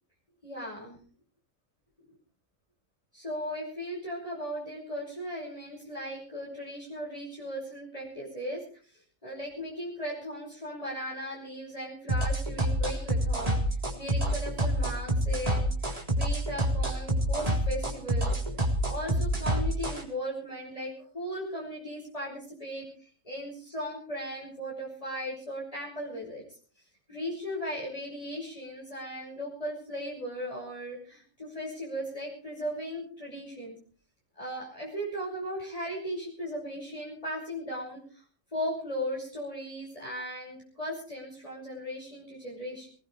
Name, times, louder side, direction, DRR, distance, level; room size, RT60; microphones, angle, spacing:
voice 1, 0.4-1.0 3.1-8.6 8.9-15.9 16.2-18.4 18.8-26.6 27.1-33.8 34.3-38.2 38.5-42.9, equal, 25° left, -5 dB, 6.2 m, -37 dB
sound 1, 12.1-20.0, right 1 dB, 25° right, 3.7 m, -27 dB
20.5 x 20.0 x 3.3 m, 0.41 s
omnidirectional pair, 1.4 m